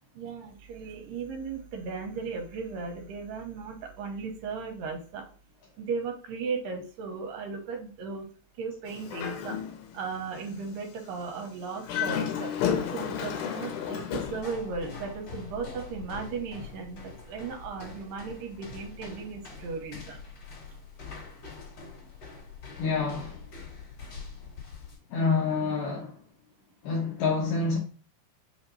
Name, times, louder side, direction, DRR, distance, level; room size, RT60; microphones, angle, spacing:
voice 1, 0.1-5.2 5.8-8.2 8.6-9.6 9.9-12.5 12.9-20.2, right 5 dB, 75° right, 2.5 m, -36 dB
Dog, 8.9-10.0 10.4-10.5 11.7-14.4, left 8 dB, 90° left, 2.5 m, -31 dB
sound 1, 14.2-25.0, left 5 dB, 45° left, 2.7 m, -44 dB
voice 2, 22.8-23.4 25.1-26.2 26.8-27.8, left 4 dB, 75° left, 2.2 m, -27 dB
5.9 x 2.8 x 2.9 m
omnidirectional pair, 4.2 m